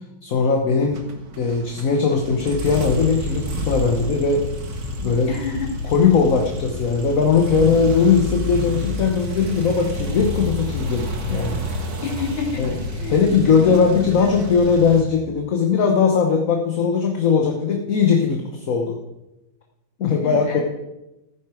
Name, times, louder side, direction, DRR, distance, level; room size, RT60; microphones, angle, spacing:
voice 1, 0.2-1.1 1.4-4.5 5.0-5.3 5.8-11.6 12.6-12.8 13.1-19.0 20.0-20.6, left 5 dB, 50° left, 2 dB, 1.3 m, -19 dB
sound 1, 0.9-15.0, left 1 dB, 60° right, 2.3 m, -29 dB
voice 2, 5.3-5.7 12.0-14.5 20.0-20.6, left 4 dB, 70° left, -3 dB, 3.8 m, -30 dB
15.0 x 9.6 x 4.8 m, 0.95 s
omnidirectional pair, 2.3 m